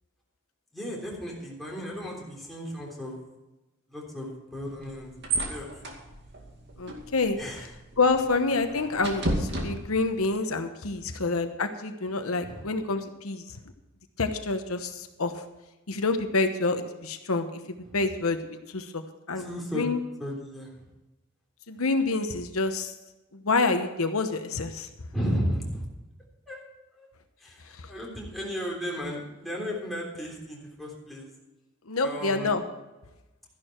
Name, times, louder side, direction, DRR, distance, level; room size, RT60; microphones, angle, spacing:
voice 1, 0.7-3.2 3.9-5.7 7.4-7.6 11.1-11.2 12.4-12.7 19.4-19.9 20.2-20.7 25.1-25.8 26.5-26.6 27.0-27.1 27.4-31.3 32.0-32.5, equal, ahead, -4 dB, 3.4 m, -34 dB
sound 1, 4.6-10.3, right 2 dB, 55° right, 2.4 m, -34 dB
voice 2, 6.8-7.4 8.0-13.6 14.2-15.4 15.9-19.0 19.3-19.5 19.7-20.0 21.7-22.9 23.3-24.9 27.7-27.9 31.9-32.6, left 3 dB, 85° left, 7 dB, 1.0 m, -27 dB
13.5 x 11.0 x 4.5 m, 1.0 s
head